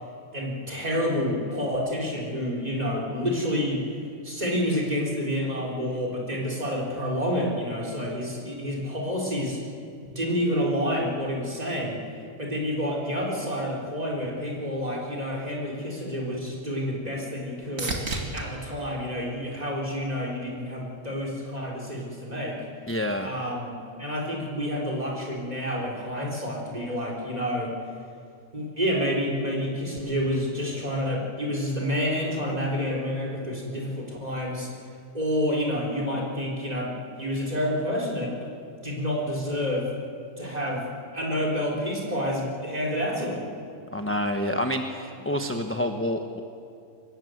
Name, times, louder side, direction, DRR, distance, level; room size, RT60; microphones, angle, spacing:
voice 1, 0.3-3.8 4.2-9.6 10.1-12.0 12.4-18.0 18.3-22.7 23.2-27.7 28.5-34.7 35.1-38.5 38.8-39.9 40.4-43.5, equal, 30° right, -1 dB, 4.3 m, -29 dB
sound 1, 16.0-20.3 20.8-21.4 29.2-29.3, right 3 dB, 80° right, 2.9 m, -37 dB
voice 2, 22.9-23.3 43.9-46.4, left 1 dB, 10° left, 5 dB, 1.0 m, -28 dB
24.5 x 20.5 x 7.9 m, 2.4 s
omnidirectional pair, 1.3 m